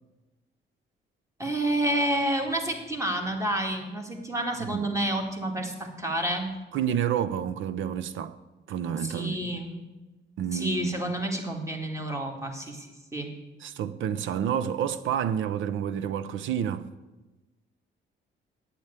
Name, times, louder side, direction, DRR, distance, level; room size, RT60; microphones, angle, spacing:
voice 1, 1.4-6.5 9.0-9.8 10.5-12.9 13.1-13.3, right 1 dB, 15° right, 2.3 m, -29 dB
voice 2, 6.7-8.4 8.7-9.4 10.4-11.1 13.6-16.9, right 9 dB, 75° right, 0.7 m, -29 dB
8.7 x 8.0 x 8.2 m
cardioid pair, 90°, 20 cm